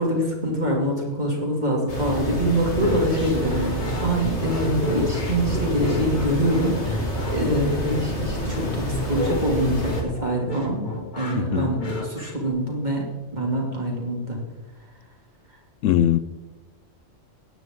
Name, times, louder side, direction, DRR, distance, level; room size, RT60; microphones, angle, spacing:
voice 1, 0.0-10.8 11.2-13.0 13.3-14.4, right 1 dB, 35° right, 2.8 m, -25 dB
sound 1, 1.9-10.0, equal, 60° left, 2.6 m, -28 dB
sound 2, 2.8-12.5, left 1 dB, 40° left, 1.8 m, -31 dB
voice 2, 11.3-11.7 15.8-16.2, left 11 dB, 80° left, 0.9 m, -20 dB
18.0 x 9.3 x 3.7 m
omnidirectional pair, 1.3 m